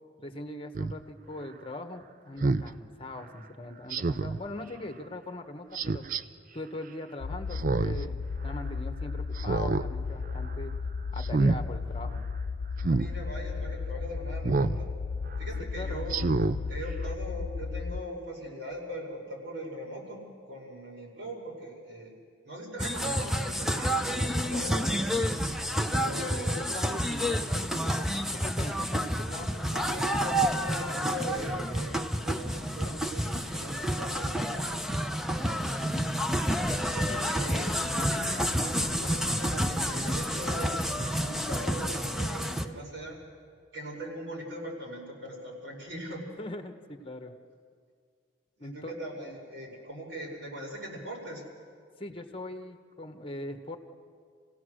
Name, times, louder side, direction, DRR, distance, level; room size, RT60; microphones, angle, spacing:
voice 1, 0.2-6.0 6.5-10.7 11.1-12.2 15.6-16.1 25.9-29.6 46.4-47.3 48.6-48.9 52.0-53.8, left 1 dB, 30° left, 7 dB, 1.3 m, -41 dB
Speech synthesizer, 0.7-0.9 2.4-2.7 3.9-4.4 5.7-6.2 7.5-8.0 8.4-8.5 9.3-9.9 10.2-10.5 11.2-11.6 12.8-13.1 14.4-14.8 15.3-15.4 16.1-16.6 17.0-17.1, right 3 dB, 45° right, 0.5 m, -27 dB
sound 1, 7.2-18.0, left 4 dB, 90° left, 0.5 m, -34 dB
voice 2, 12.8-14.9 15.4-16.3 16.7-22.1 22.5-25.0 25.9-26.6 29.2-34.8 35.7-36.2 36.9-43.2 43.7-46.2 48.6-51.4, equal, 70° right, -1 dB, 5.2 m, -40 dB
sound 2, 22.8-42.7, equal, ahead, 0.7 m, -29 dB
28.5 x 17.0 x 6.4 m, 2.1 s
head